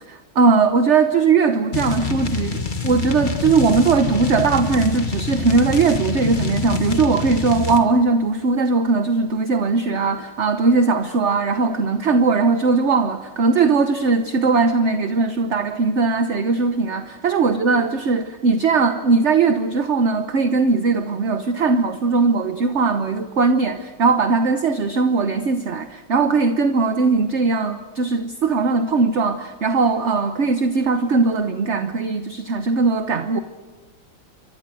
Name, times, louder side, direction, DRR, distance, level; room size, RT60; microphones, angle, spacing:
voice 1, 0.1-33.4, right 4 dB, 45° right, 8 dB, 1.1 m, -19 dB
sound 1, 1.7-7.8, left 5 dB, 25° left, 1.4 m, -26 dB
29.5 x 23.5 x 7.7 m, 1.3 s
omnidirectional pair, 2.2 m